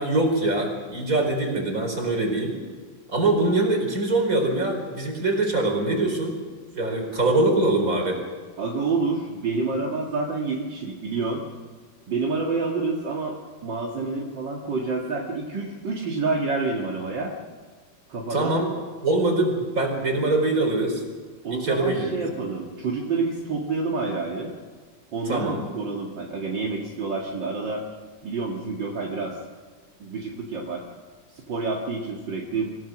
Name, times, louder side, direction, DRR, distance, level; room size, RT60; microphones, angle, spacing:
voice 1, 0.0-2.5 3.1-6.4 6.7-8.2 18.3-18.7 19.0-21.0 21.5-22.2 25.3-25.6, right 2 dB, 45° right, 2 dB, 4.9 m, -23 dB
voice 2, 8.6-11.4 12.1-13.4 13.6-17.3 18.1-18.6 21.4-24.5 25.1-27.8 28.2-29.3 30.0-30.8 31.3-32.7, right 3 dB, 65° right, -2 dB, 2.8 m, -28 dB
26.5 x 17.5 x 6.3 m, 1.5 s
omnidirectional pair, 2.1 m